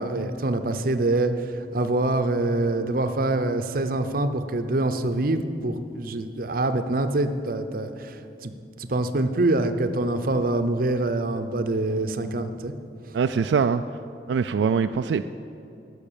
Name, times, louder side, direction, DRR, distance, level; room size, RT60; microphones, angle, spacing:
voice 1, 0.0-1.3 1.7-8.5 8.8-12.7, right 2 dB, 55° right, 9 dB, 0.7 m, -25 dB
voice 2, 13.1-13.8 14.3-15.2, right 6 dB, 80° right, 8 dB, 0.3 m, -22 dB
12.0 x 6.5 x 8.7 m, 2.7 s
head